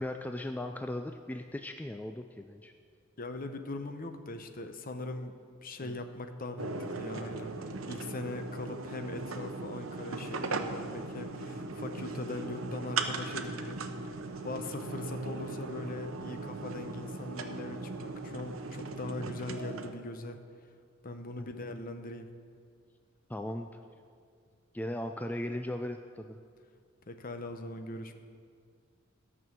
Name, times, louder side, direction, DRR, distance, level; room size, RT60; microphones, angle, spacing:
voice 1, 0.0-2.7 5.8-6.0 23.3-23.8 24.7-26.4, left 1 dB, 10° left, 6 dB, 0.3 m, -37 dB
voice 2, 3.2-5.3 5.6-7.5 7.8-13.8 14.4-20.4 21.0-22.3 27.1-28.1, left 2 dB, 45° left, 7 dB, 0.8 m, -40 dB
sound 1, 6.6-19.9, right 3 dB, 85° right, 0.8 m, -38 dB
12.5 x 6.1 x 7.4 m, 2.2 s
head